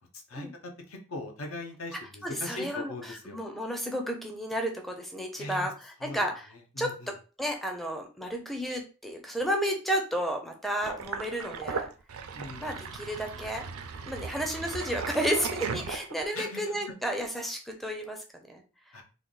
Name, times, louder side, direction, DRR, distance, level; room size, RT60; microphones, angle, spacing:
voice 1, 0.3-3.4 5.4-5.7 6.0-6.3 6.7-7.1 12.3-12.8 16.3-16.9 18.9-19.0, left 2 dB, 75° left, 3 dB, 0.8 m, -40 dB
voice 2, 2.2-6.5 6.8-11.9 12.6-13.7 14.1-18.6, equal, ahead, 2 dB, 0.5 m, -32 dB
Sink (filling or washing), 10.8-16.4, right 5 dB, 85° right, 0.5 m, -37 dB
3.3 x 2.3 x 3.9 m, 0.35 s
head